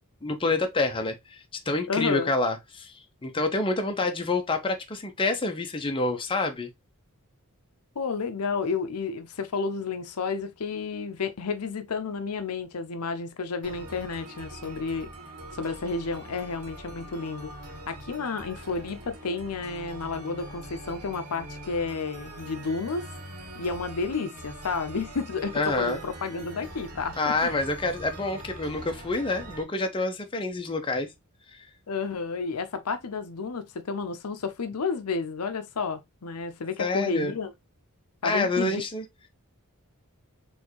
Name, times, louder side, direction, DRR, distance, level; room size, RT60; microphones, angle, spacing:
voice 1, 0.2-1.4 1.7-2.9 3.2-6.7 25.5-26.0 27.2-31.1 31.5-31.6 36.8-37.3 38.2-39.0, left 2 dB, 25° left, 0.7 m, -27 dB
voice 2, 1.9-2.3 8.0-15.1 15.6-17.5 17.9-23.1 23.6-27.5 31.9-37.5 38.2-38.8, left 4 dB, 80° left, 0.7 m, -31 dB
sound 1, 13.6-29.6, right 1 dB, 80° right, 1.8 m, -43 dB
4.4 x 3.3 x 3.0 m
head